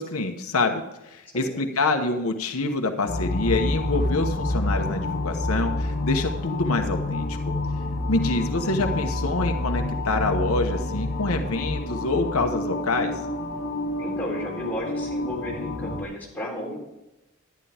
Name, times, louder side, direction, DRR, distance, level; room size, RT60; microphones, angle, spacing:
voice 1, 0.0-7.5 8.1-13.1, left 3 dB, 90° left, 4 dB, 1.1 m, -26 dB
voice 2, 1.3-1.6 14.0-16.8, equal, 10° left, -4 dB, 3.6 m, -33 dB
sound 1, 3.1-16.0, left 2 dB, 45° left, 1.1 m, -28 dB
11.0 x 10.5 x 3.5 m, 0.96 s
head